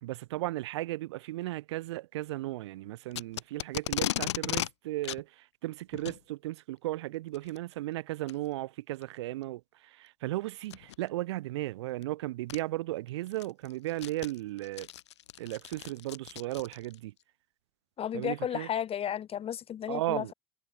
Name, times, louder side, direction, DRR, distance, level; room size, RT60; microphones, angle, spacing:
voice 1, 0.0-14.9 15.4-17.1 18.1-18.7 19.9-20.3, right 17 dB, 80° right, 2.1 m, -35 dB
Packing tape duct tape, 3.1-4.7 5.0-5.2 5.9-6.2 7.3-7.6 8.3-8.4 9.0-9.1 10.7-11.0 12.0-12.1 12.5-12.6 13.1-17.0, left 13 dB, 85° left, 4.6 m, -36 dB
voice 2, 18.0-20.3, left 9 dB, 45° left, 4.8 m, -33 dB
hypercardioid pair, 75°, 14 cm